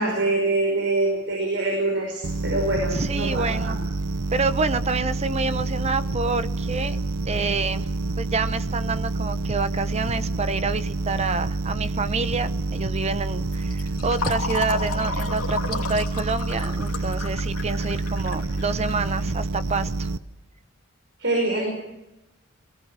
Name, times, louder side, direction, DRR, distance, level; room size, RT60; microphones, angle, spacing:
voice 1, 0.0-3.8 21.2-21.7, right 2 dB, 55° right, 0 dB, 5.6 m, -24 dB
sound 1, 2.2-20.2, right 2 dB, 85° right, 0.8 m, -28 dB
voice 2, 2.9-3.8 4.3-7.0 7.3-7.9 8.2-20.1, right 3 dB, 30° right, 13 dB, 0.8 m, -27 dB
Fill (with liquid), 13.5-19.9, left 4 dB, 90° left, 2.7 m, -33 dB
22.5 x 17.5 x 7.4 m, 0.93 s
head